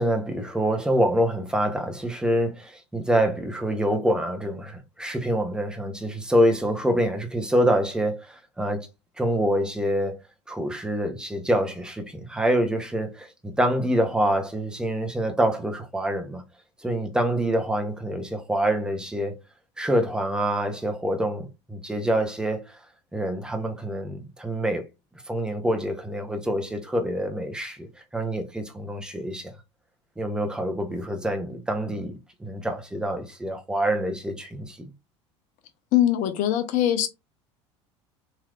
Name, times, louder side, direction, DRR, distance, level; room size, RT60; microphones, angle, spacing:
voice 1, 0.0-8.9 9.2-10.2 10.5-16.4 16.8-19.3 19.8-22.8 23.1-24.8 25.3-29.5 30.2-34.9, equal, 5° right, 0.8 m, -26 dB
voice 2, 35.9-37.1, left 12 dB, 55° left, 0.7 m, -22 dB
3.2 x 2.8 x 2.4 m
hypercardioid pair, 80°, 16 cm